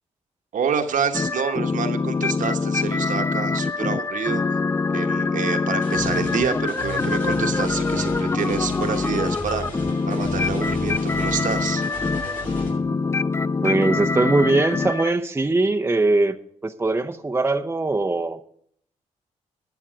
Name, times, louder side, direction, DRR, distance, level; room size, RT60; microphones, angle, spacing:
voice 1, 0.5-4.4 4.9-11.8, right 6 dB, 65° right, 6 dB, 1.2 m, -28 dB
sound 1, 1.1-15.1, left 4 dB, 20° left, 0.3 m, -24 dB
sound 2, 5.8-12.7, left 1 dB, 70° left, 5.2 m, -34 dB
voice 2, 13.6-16.4 16.6-18.5, right 2 dB, 15° right, 8 dB, 0.6 m, -21 dB
11.5 x 7.0 x 6.3 m, 0.67 s
supercardioid pair, 60°, 14 cm